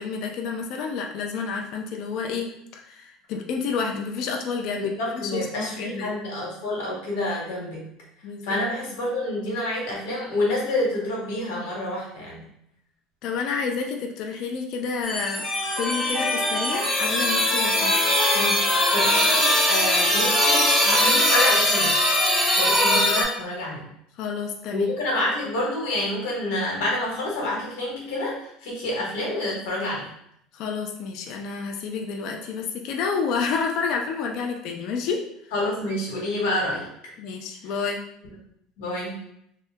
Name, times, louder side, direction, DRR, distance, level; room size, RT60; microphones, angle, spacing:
voice 1, 0.0-2.5 2.7-6.1 8.2-8.6 13.2-15.5 15.8-18.0 18.3-18.6 24.2-24.9 30.5-35.2 37.2-38.0, left 5 dB, 45° left, 3 dB, 0.4 m, -29 dB
voice 2, 4.8-7.9 8.4-12.4 18.9-22.0 22.6-23.9 24.7-30.1 35.5-36.9 38.8-39.2, left 1 dB, 85° left, -3 dB, 1.2 m, -28 dB
sound 1, 15.0-23.2, left 1 dB, 5° left, 0.8 m, -21 dB
2.8 x 2.1 x 3.4 m, 0.73 s
cardioid pair, 175°, 0 cm